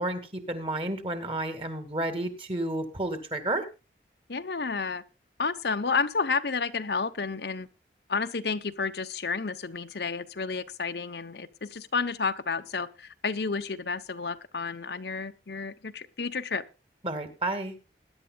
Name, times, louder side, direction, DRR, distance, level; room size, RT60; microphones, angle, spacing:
voice 1, 0.0-3.7 17.0-17.7, right 1 dB, 30° right, 9 dB, 2.2 m, -31 dB
voice 2, 4.3-5.0 5.4-7.7 8.1-16.6, left 4 dB, 75° left, 8 dB, 0.9 m, -31 dB
21.0 x 10.5 x 2.4 m, 0.30 s
head